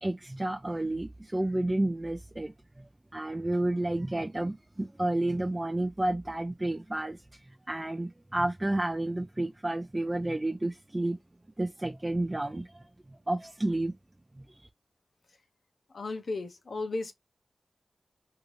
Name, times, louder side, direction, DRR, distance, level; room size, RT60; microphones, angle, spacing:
voice 1, 0.0-7.2 7.7-11.2 11.6-13.9 14.4-14.7, right 1 dB, 25° right, 0.4 m, -31 dB
voice 2, 15.9-17.1, left 3 dB, 75° left, 0.6 m, -34 dB
2.7 x 2.5 x 3.0 m
wide cardioid pair, 65°, 0 cm